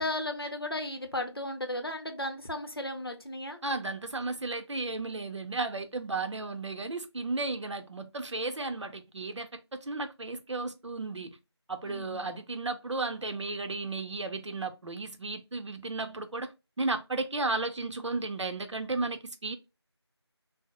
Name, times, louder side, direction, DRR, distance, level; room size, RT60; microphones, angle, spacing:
voice 1, 0.0-3.6 11.8-12.3, left 1 dB, 55° left, 0.6 m, -35 dB
voice 2, 3.6-11.4 11.7-16.5 16.8-19.6, right 3 dB, 85° right, 0.6 m, -34 dB
2.7 x 2.0 x 2.8 m
figure-of-eight pair, 175°, 15 cm